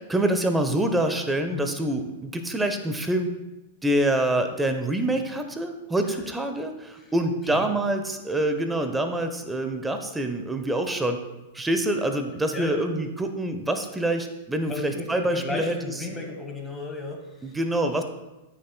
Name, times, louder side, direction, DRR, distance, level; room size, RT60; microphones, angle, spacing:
voice 1, 0.1-3.3 3.8-11.2 11.5-15.9 17.4-18.0, right 1 dB, 10° right, 7 dB, 0.8 m, -26 dB
voice 2, 12.5-12.8 14.7-17.6, left 2 dB, 15° left, 2 dB, 1.7 m, -34 dB
14.0 x 6.4 x 2.3 m, 1.0 s
figure-of-eight pair, 100°, 0 cm